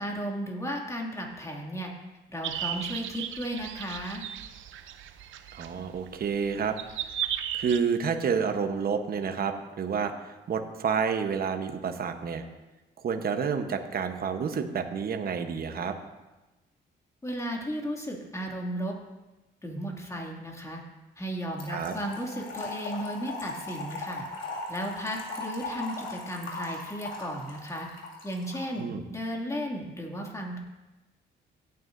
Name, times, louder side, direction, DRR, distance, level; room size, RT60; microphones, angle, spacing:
voice 1, 0.0-1.9 2.3-4.2 17.2-18.9 19.6-20.8 21.2-24.2 24.7-27.9 28.2-30.6, equal, 15° left, -1 dB, 2.4 m, -34 dB
sound 1, 2.4-7.8, right 10 dB, 80° right, 0.6 m, -36 dB
voice 2, 5.5-6.8 7.5-10.1 10.5-12.4 13.0-16.0 21.7-21.9 28.8-29.0, right 6 dB, 50° right, 7 dB, 1.0 m, -29 dB
Trickle dribble / Fill (with liquid), 21.6-28.7, left 2 dB, 85° left, 2.4 m, -38 dB
16.5 x 9.5 x 2.6 m, 1.1 s
cardioid pair, 90°, 20 cm